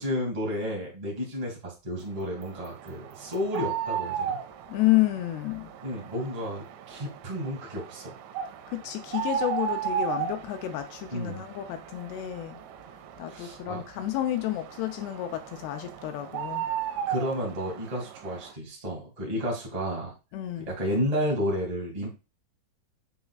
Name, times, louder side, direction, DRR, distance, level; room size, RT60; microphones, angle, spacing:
voice 1, 0.0-4.4 5.8-8.1 11.1-11.4 13.3-13.8 17.1-20.1 20.7-22.1, equal, 45° right, 0.5 m, -31 dB
sound 1, 2.2-18.5, right 8 dB, 85° right, 2.9 m, -36 dB
voice 2, 4.7-5.7 8.7-12.6 13.2-16.7 20.3-20.7, left 14 dB, 80° left, 2.5 m, -30 dB
7.2 x 6.2 x 2.3 m
omnidirectional pair, 5.3 m